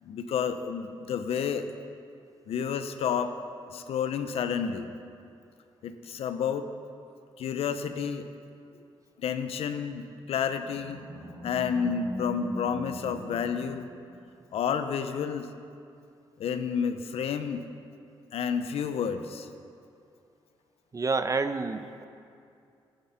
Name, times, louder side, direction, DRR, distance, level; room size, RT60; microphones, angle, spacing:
voice 1, 0.0-1.7 2.5-3.3 3.7-4.9 5.8-6.7 7.4-8.3 9.2-11.0 11.4-13.9 14.5-15.5 16.4-17.6 18.3-19.5, left 7 dB, 75° left, 9 dB, 0.7 m, -30 dB
Animal, 10.1-14.5, equal, 55° right, 3.4 m, -42 dB
voice 2, 20.9-22.1, right 4 dB, 35° right, 10 dB, 0.7 m, -29 dB
11.0 x 10.5 x 5.8 m, 2.5 s
cardioid pair, 60°, 10 cm